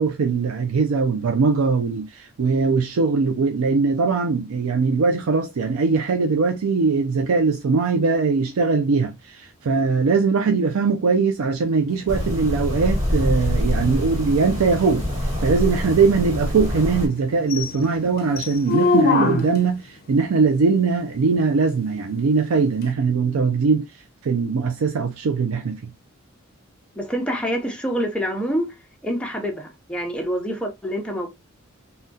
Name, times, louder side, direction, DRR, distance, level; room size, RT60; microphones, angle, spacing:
voice 1, 0.0-15.1 15.4-23.9 24.2-25.9, right 4 dB, 80° right, 0.4 m, -21 dB
sound 1, 11.9-19.8 22.8-22.9, left 3 dB, 45° left, 0.6 m, -27 dB
sound 2, 12.1-17.1, left 1 dB, 35° right, 1.5 m, -25 dB
voice 2, 27.0-28.7 29.0-31.3, equal, 5° left, 0.6 m, -26 dB
3.5 x 2.2 x 2.6 m
head